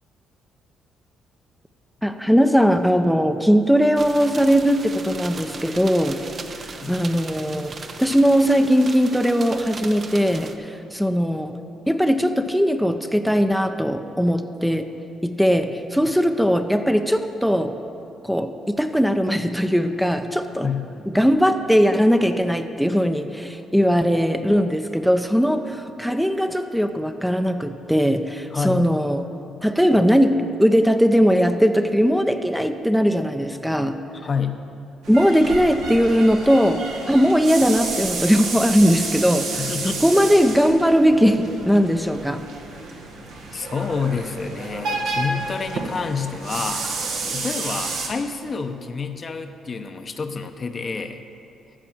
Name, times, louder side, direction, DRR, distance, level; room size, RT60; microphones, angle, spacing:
voice 1, 2.0-6.2 6.9-7.7 8.0-11.5 11.9-14.9 15.2-17.7 18.2-20.7 21.1-29.2 29.6-34.0 35.1-42.4, equal, ahead, 7 dB, 0.6 m, -19 dB
sound 1, 4.0-10.6, right 4 dB, 45° right, 0.8 m, -37 dB
voice 2, 20.6-21.1 28.5-28.9 34.2-34.6 39.5-40.0 43.5-46.9 47.3-51.2, left 5 dB, 40° left, 7 dB, 0.8 m, -28 dB
sound 2, 35.0-48.1, right 3 dB, 75° right, 1.6 m, -30 dB
14.0 x 5.2 x 7.4 m, 2.7 s
supercardioid pair, 55°, 0 cm